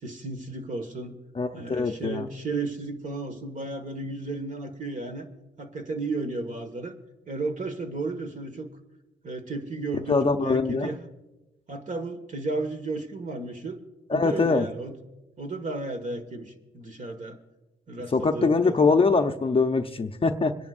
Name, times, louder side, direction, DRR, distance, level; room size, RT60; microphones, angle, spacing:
voice 1, 0.0-1.2 1.5-5.3 5.6-6.9 7.3-8.7 9.2-11.0 11.7-13.8 14.1-14.9 15.4-17.4 17.9-18.9, right 3 dB, 40° right, 6 dB, 1.8 m, -33 dB
voice 2, 1.4-2.3 10.1-10.9 14.1-14.7 18.1-20.6, left 4 dB, 30° left, 6 dB, 0.8 m, -23 dB
26.0 x 10.5 x 2.6 m, 1.0 s
cardioid pair, 90°, 20 cm